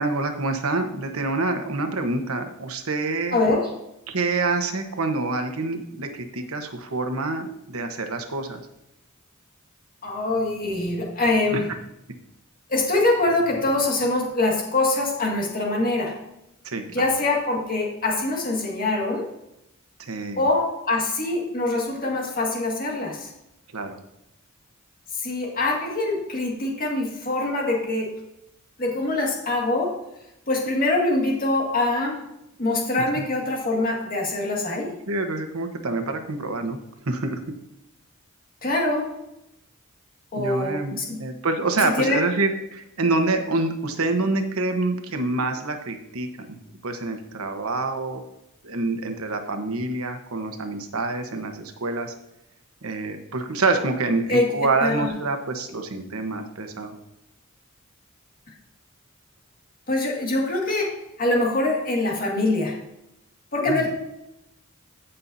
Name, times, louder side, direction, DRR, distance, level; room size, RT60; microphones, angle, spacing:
voice 1, 0.0-3.4 4.1-8.6 11.5-11.6 16.6-17.1 20.0-20.4 23.7-24.0 33.0-33.2 35.1-36.8 37.1-37.4 40.3-48.2 48.6-52.1 52.8-56.9 63.7-63.8, right 3 dB, 75° right, 6 dB, 1.1 m, -26 dB
voice 2, 3.3-3.7 10.0-11.7 12.7-16.1 16.9-19.3 20.4-23.3 25.2-28.1 28.8-30.0 30.5-32.2 32.6-34.9 38.6-39.1 40.3-41.2 41.8-42.2 54.3-54.5 54.8-55.1 59.9-62.8 63.5-63.9, left 2 dB, 45° left, -1 dB, 2.0 m, -24 dB
14.5 x 5.6 x 2.7 m, 0.85 s
head